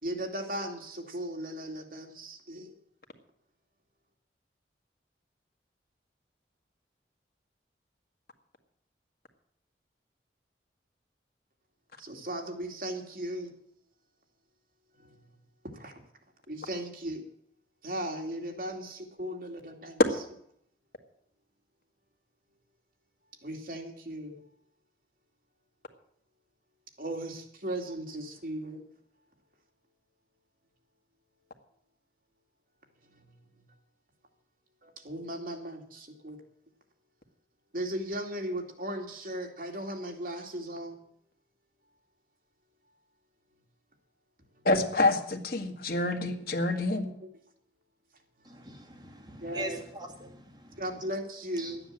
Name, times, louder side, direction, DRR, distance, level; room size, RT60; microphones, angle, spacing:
voice 1, 0.0-2.7 12.0-13.5 15.0-15.2 15.7-15.9 16.5-17.2 17.8-20.0 23.4-24.4 27.0-28.8 33.1-33.2 34.8-36.4 37.7-41.0 47.2-47.3 49.4-49.8 50.8-51.8, right 1 dB, 50° right, 2.5 m, -37 dB
voice 2, 44.6-47.1, left 2 dB, 55° left, 1.8 m, -27 dB
voice 3, 48.4-50.8 51.6-51.8, right 1 dB, 25° right, 2.5 m, -42 dB
12.5 x 9.7 x 7.6 m
head